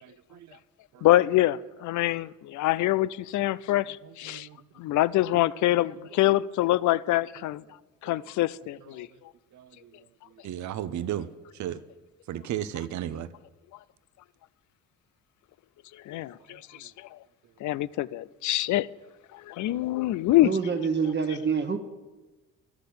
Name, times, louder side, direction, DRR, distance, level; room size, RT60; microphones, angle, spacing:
voice 1, 0.0-0.6 0.9-1.1 4.0-4.6 5.3-5.4 6.3-6.4 9.0-9.1 9.5-9.9 10.4-11.3 11.5-11.8 12.3-13.3 16.5-16.6, right 11 dB, 70° right, 0.7 m, -35 dB
voice 2, 1.0-4.5 4.8-7.6 8.0-9.1 16.1-17.1 17.6-18.9 19.3-20.5, left 15 dB, 75° left, 0.5 m, -25 dB
voice 3, 20.4-21.8, right 5 dB, 35° right, 1.1 m, -26 dB
12.0 x 6.0 x 8.5 m
cardioid pair, 90°, 30 cm